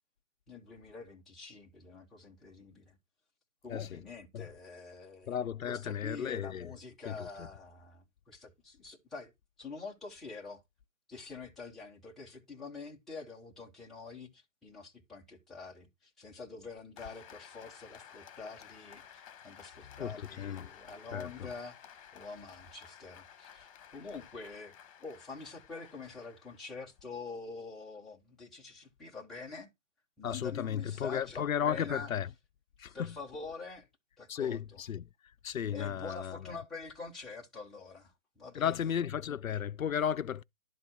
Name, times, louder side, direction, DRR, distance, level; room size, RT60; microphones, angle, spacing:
voice 1, 0.5-3.0 3.6-9.3 9.6-10.6 11.1-21.8 22.1-24.7 25.0-29.7 30.2-32.1 32.8-33.9 34.2-34.8 35.7-38.8, left 4 dB, ahead, 0.6 m, -46 dB
voice 2, 5.3-6.7 7.1-7.5 20.0-20.7 21.1-21.5 30.2-32.3 32.8-33.1 34.3-35.1 35.4-36.5 38.5-40.4, left 9 dB, 80° left, 0.6 m, -34 dB
Applause, 17.0-27.0, left 9 dB, 25° left, 1.2 m, -54 dB
11.5 x 4.2 x 5.9 m
figure-of-eight pair, 140°, 40 cm